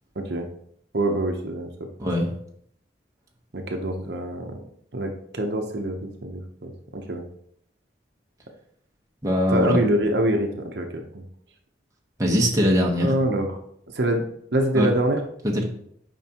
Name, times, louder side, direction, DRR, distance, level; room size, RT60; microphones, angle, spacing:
voice 1, 0.2-0.5 0.9-1.7 3.5-4.6 4.9-7.2 9.5-11.2 13.0-13.6 13.9-14.2 14.5-15.2, right 1 dB, 60° right, 3 dB, 0.8 m, -25 dB
voice 2, 2.0-2.3 9.2-9.8 12.2-13.1 14.7-14.9 15.4-15.6, equal, 15° right, -1 dB, 1.1 m, -21 dB
9.1 x 5.1 x 2.9 m, 0.68 s
head